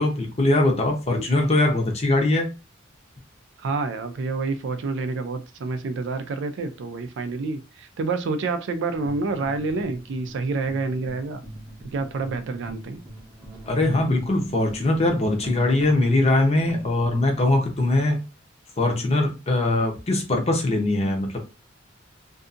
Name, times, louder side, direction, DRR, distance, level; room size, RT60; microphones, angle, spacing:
voice 1, 0.0-2.5 13.7-18.2 18.8-21.5, left 2 dB, 35° left, 3 dB, 0.7 m, -21 dB
voice 2, 3.6-11.4 11.8-13.0, right 3 dB, 65° right, 9 dB, 0.4 m, -28 dB
sound 1, 8.9-17.3, right 1 dB, 20° right, 0.7 m, -42 dB
2.6 x 2.4 x 2.4 m, 0.29 s
head